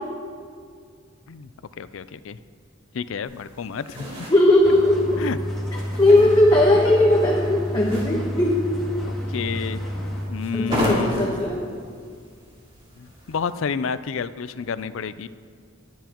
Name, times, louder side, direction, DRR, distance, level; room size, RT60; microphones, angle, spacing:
voice 1, 1.8-2.4 2.9-4.1 5.2-5.4 6.1-6.4 9.0-9.8 10.3-11.1 13.0-15.3, left 6 dB, 75° left, 14 dB, 0.4 m, -30 dB
sound 1, 3.2-13.6, equal, 30° right, 2.9 m, -34 dB
voice 2, 4.3-5.0 6.0-8.7 10.5-11.7, left 1 dB, 20° left, -3 dB, 1.1 m, -18 dB
sound 2, 4.6-10.3, equal, ahead, 2.3 m, -30 dB
21.5 x 9.1 x 3.0 m, 2.1 s
head